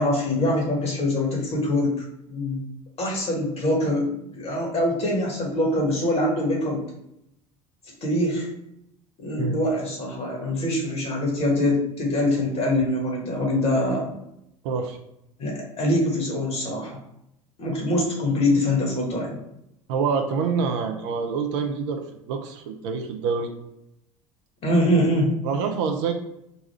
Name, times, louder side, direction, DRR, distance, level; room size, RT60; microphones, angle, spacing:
voice 1, 0.0-1.9 2.3-2.6 3.0-6.8 8.0-8.5 9.2-14.1 15.4-17.0 17.6-19.4 24.6-25.3, left 1 dB, 35° left, -1 dB, 1.4 m, -24 dB
voice 2, 14.6-15.0 19.9-23.5 25.4-26.1, right 5 dB, 55° right, 5 dB, 0.5 m, -26 dB
4.0 x 2.3 x 4.2 m, 0.81 s
figure-of-eight pair, 70°, 18 cm